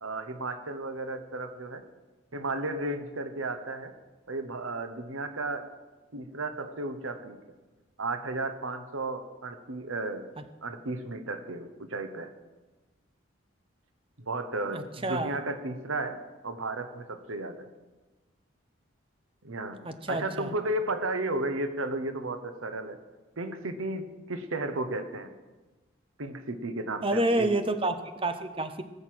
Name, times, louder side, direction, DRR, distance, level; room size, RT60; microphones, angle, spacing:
voice 1, 0.0-1.8 2.3-3.9 4.3-5.7 6.1-7.4 8.0-10.3 10.6-12.3 14.2-16.2 16.4-17.7 19.4-23.0 23.4-25.3 26.2-27.5, right 2 dB, 85° right, 8 dB, 1.2 m, -34 dB
voice 2, 14.7-15.4 19.8-20.5 27.0-28.8, right 2 dB, 25° right, 9 dB, 0.9 m, -29 dB
18.5 x 6.7 x 7.7 m, 1.2 s
head